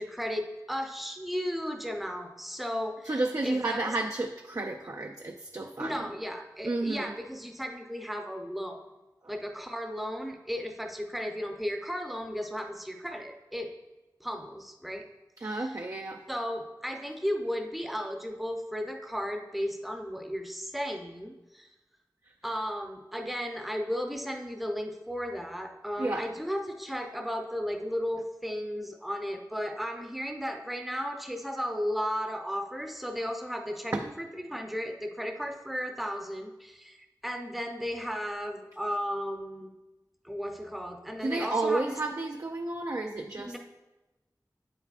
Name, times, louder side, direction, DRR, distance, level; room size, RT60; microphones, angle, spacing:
voice 1, 0.0-3.1 3.4-3.9 5.8-8.8 9.3-13.7 14.2-15.1 15.4-15.8 16.3-21.7 22.4-39.7 40.2-41.8 43.4-43.6, equal, ahead, 3 dB, 0.7 m, -35 dB
voice 2, 3.0-6.1 6.6-7.1 9.2-9.3 15.4-16.2 22.2-22.3 26.0-26.3 33.9-34.1 41.2-43.6, right 2 dB, 45° right, 2 dB, 0.4 m, -31 dB
8.1 x 6.9 x 2.4 m, 1.0 s
wide cardioid pair, 50°, 7 cm